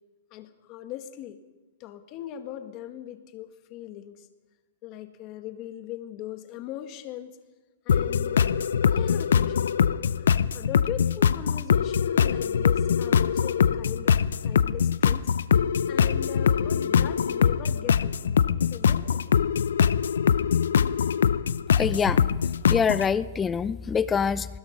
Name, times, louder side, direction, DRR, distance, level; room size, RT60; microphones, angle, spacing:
voice 1, 0.3-1.4 1.8-4.3 4.8-7.4 7.9-9.7 10.0-10.3 10.5-15.2 15.9-18.3 18.7-19.7, left 11 dB, 35° left, 8 dB, 1.8 m, -40 dB
sound 1, 7.9-23.1, left 7 dB, 85° left, 0.7 m, -23 dB
voice 2, 21.8-22.3 22.7-24.5, left 6 dB, 15° left, 16 dB, 0.6 m, -25 dB
26.0 x 20.5 x 5.4 m, 1.2 s
hypercardioid pair, 150°, 0 cm